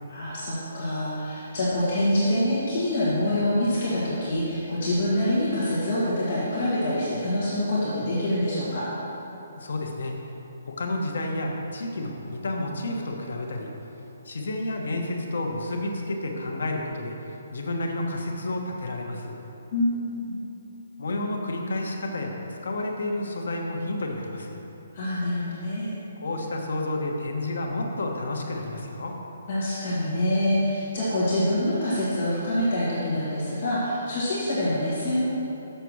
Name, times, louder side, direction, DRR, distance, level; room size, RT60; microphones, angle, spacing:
voice 1, 0.1-8.9 19.7-20.3 24.9-25.9 29.5-35.2, left 1 dB, 35° left, -8 dB, 1.7 m, -25 dB
voice 2, 9.6-10.1 10.6-13.7 14.2-17.1 17.5-19.3 21.0-24.6 26.2-29.1, left 2 dB, 70° left, 1 dB, 1.2 m, -30 dB
6.8 x 5.9 x 6.2 m, 3.0 s
hypercardioid pair, 180°, 0 cm